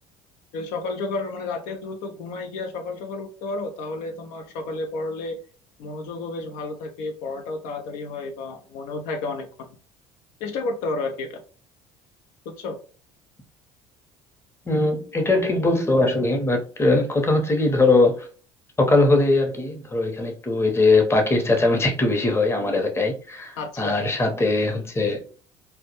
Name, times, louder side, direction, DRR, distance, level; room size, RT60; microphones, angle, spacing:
voice 1, 0.5-5.4 5.8-9.7 10.4-11.4 12.6-12.8 23.6-24.1, left 3 dB, 75° left, 0.4 m, -31 dB
voice 2, 14.7-18.3 18.8-25.2, left 2 dB, 20° left, 0.7 m, -21 dB
2.2 x 2.0 x 2.9 m
hypercardioid pair, 75°, 14 cm